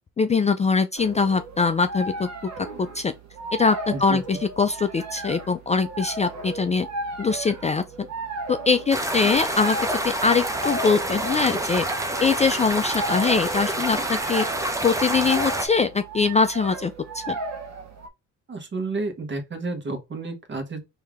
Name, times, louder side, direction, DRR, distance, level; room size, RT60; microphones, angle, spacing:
voice 1, 0.2-2.5 2.8-3.1 3.6-6.9 7.2-7.8 8.5-11.8 12.2-14.5 14.8-17.3, left 4 dB, 25° left, 0.4 m, -22 dB
sound 1, 1.0-18.1, right 3 dB, 65° right, 1.0 m, -35 dB
sound 2, 8.9-15.7, right 1 dB, 10° right, 0.8 m, -27 dB
voice 2, 18.5-20.8, right 3 dB, 40° right, 1.2 m, -31 dB
3.2 x 2.8 x 3.5 m
cardioid pair, 90°, 30 cm